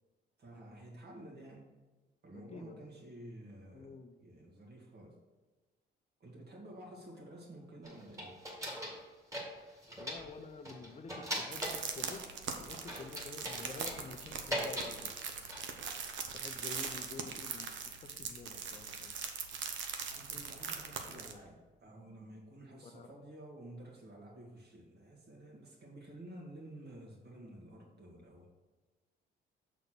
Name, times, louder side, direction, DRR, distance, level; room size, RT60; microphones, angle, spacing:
voice 1, 0.4-1.6 2.2-3.9 4.2-5.2 6.2-8.4 20.1-28.5, right 1 dB, 55° right, -1 dB, 2.1 m, -51 dB
voice 2, 2.3-2.8 3.7-4.1 10.0-12.3 12.6-15.2 16.3-19.1 22.7-23.1, left 4 dB, 35° left, 7 dB, 0.7 m, -49 dB
sound 1, 7.8-9.0 9.3-10.3 10.7-12.2 12.9-15.0 15.3-15.8, equal, 15° right, 1.9 m, -40 dB
sound 2, 11.5-21.3, right 6 dB, 70° right, 0.9 m, -41 dB
6.5 x 4.1 x 6.0 m, 1.2 s
cardioid pair, 90°, 20 cm